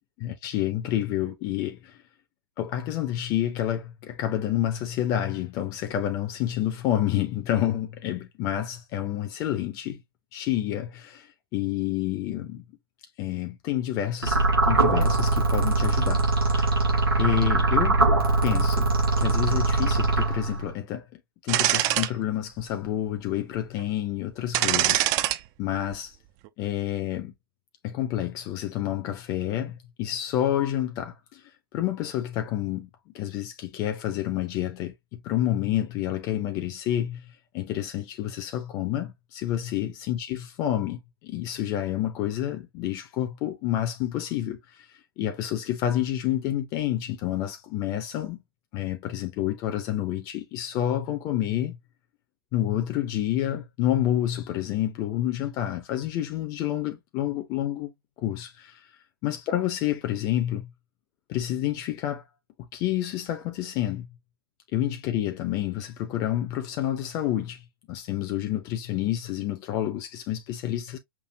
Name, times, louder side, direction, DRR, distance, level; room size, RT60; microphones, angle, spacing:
voice 1, 0.4-2.0 2.6-10.0 10.3-12.6 13.2-16.9 17.2-18.0 18.4-21.1 21.4-25.1 25.6-26.2 26.6-27.3 27.8-31.4 31.7-32.9 33.1-37.3 37.5-48.4 48.7-51.8 52.5-57.9 58.2-58.9 59.2-60.7 61.3-62.2 62.7-64.1 64.7-71.0, left 12 dB, 30° left, 0.7 m, -29 dB
sound 1, 14.2-20.7, right 2 dB, 75° right, 2.6 m, -22 dB
sound 2, 21.5-22.1 22.6-22.7 24.5-25.4 25.7-25.9, right 15 dB, 30° right, 0.4 m, -23 dB
6.0 x 2.7 x 2.7 m
figure-of-eight pair, 105°, 12 cm